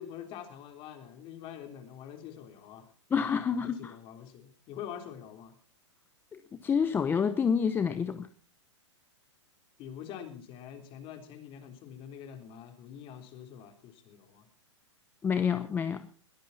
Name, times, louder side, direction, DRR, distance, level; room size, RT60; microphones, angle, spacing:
voice 1, 0.0-2.9 3.5-5.6 9.8-14.5, left 9 dB, 35° left, 6 dB, 3.7 m, -45 dB
voice 2, 3.1-4.0 6.3-8.3 15.2-16.1, left 6 dB, 15° left, 11 dB, 0.8 m, -28 dB
21.5 x 15.0 x 4.1 m, 0.41 s
hypercardioid pair, 140°, 16 cm